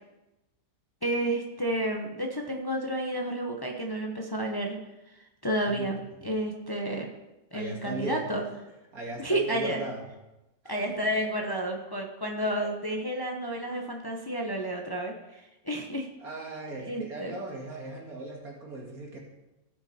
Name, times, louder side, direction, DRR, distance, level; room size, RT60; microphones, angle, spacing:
voice 1, 1.0-4.8 5.1-7.1 7.5-8.4 9.2-9.8 10.7-16.1 16.8-17.4, right 1 dB, 15° left, 1 dB, 1.0 m, -31 dB
voice 2, 5.6-6.2 7.5-8.2 8.9-10.0 11.2-11.3 16.2-19.2, right 2 dB, 75° right, -2 dB, 2.7 m, -38 dB
17.0 x 6.2 x 4.4 m, 0.98 s
omnidirectional pair, 1.5 m